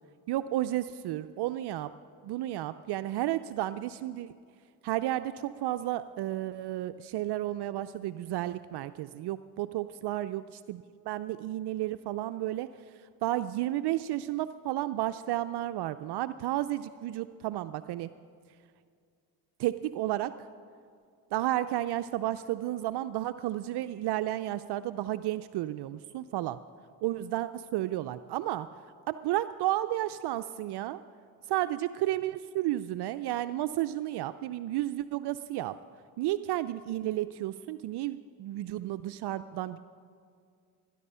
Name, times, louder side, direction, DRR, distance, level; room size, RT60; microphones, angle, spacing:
voice 1, 0.3-1.9 2.2-4.3 4.8-18.1 19.6-20.5 21.3-26.6 27.0-31.0 31.5-35.8 36.2-39.8, right 14 dB, 65° right, 12 dB, 0.5 m, -32 dB
19.5 x 11.0 x 5.6 m, 2.3 s
supercardioid pair, 65°, 43 cm